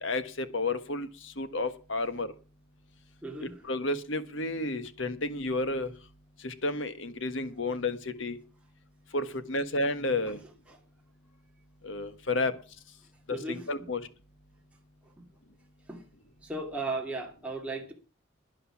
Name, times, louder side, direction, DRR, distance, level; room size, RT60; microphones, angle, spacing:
voice 1, 0.0-1.1 1.4-2.3 3.4-5.9 6.4-8.4 9.1-10.4 11.8-12.5 13.3-14.0, left 2 dB, 65° left, 12 dB, 1.5 m, -31 dB
voice 2, 3.2-3.6 10.0-10.1 10.7-10.8 13.3-13.9 15.2-15.3 15.9-16.0 16.4-17.9, right 2 dB, 5° right, 0 dB, 2.4 m, -36 dB
12.0 x 11.0 x 6.0 m, 0.34 s
head